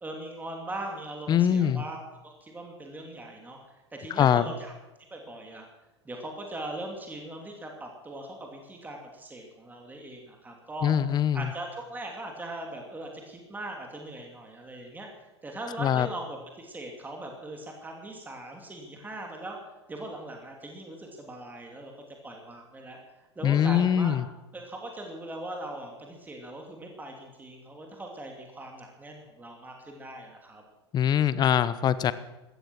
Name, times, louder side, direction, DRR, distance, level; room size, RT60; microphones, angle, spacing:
voice 1, 0.0-3.6 3.9-4.7 5.1-5.6 6.0-10.9 11.3-19.6 19.9-21.9 22.2-23.0 23.4-24.2 24.5-30.6, right 1 dB, 10° right, 1 dB, 2.9 m, -40 dB
voice 2, 1.3-1.8 4.2-4.4 10.8-11.5 15.8-16.1 23.4-24.3 30.9-32.1, left 9 dB, 30° left, 16 dB, 1.0 m, -23 dB
17.0 x 13.5 x 6.2 m, 1.1 s
figure-of-eight pair, 85°, 15 cm